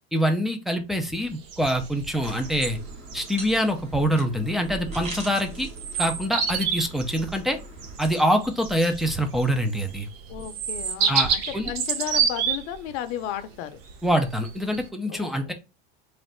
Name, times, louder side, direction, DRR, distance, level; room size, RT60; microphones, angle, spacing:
voice 1, 0.1-2.8 3.1-5.7 6.0-7.6 8.0-10.1 11.1-11.3 11.5-11.7 14.0-15.5, equal, ahead, 0.4 m, -25 dB
sound 1, 1.1-14.9, right 7 dB, 60° right, 0.9 m, -30 dB
sound 2, 2.2-8.0, right 1 dB, 20° right, 1.5 m, -41 dB
voice 2, 10.3-13.8 15.1-15.5, left 11 dB, 50° left, 0.6 m, -34 dB
3.2 x 2.5 x 4.3 m
supercardioid pair, 135°, 30 cm